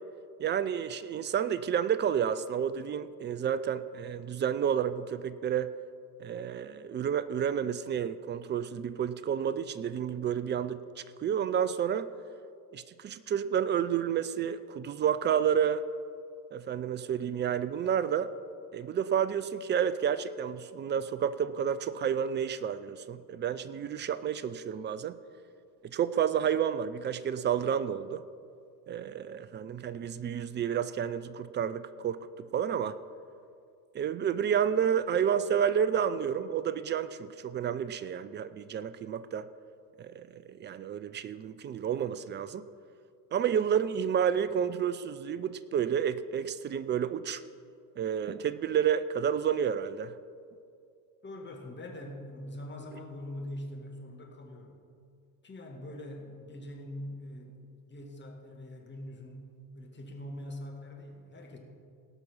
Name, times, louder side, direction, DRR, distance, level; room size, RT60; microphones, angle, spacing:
voice 1, 0.4-5.7 6.2-10.8 11.2-12.1 12.7-15.8 16.5-18.3 18.7-25.2 25.9-28.2 28.9-32.2 32.5-33.0 33.9-39.5 40.0-42.6 43.3-47.4 48.0-50.1, right 8 dB, 25° right, 15 dB, 0.4 m, -30 dB
voice 2, 51.2-54.8 55.4-57.6 57.9-59.5 59.7-61.6, left 1 dB, 20° left, 1 dB, 2.3 m, -43 dB
18.0 x 6.0 x 5.6 m, 2.4 s
hypercardioid pair, 65°, 49 cm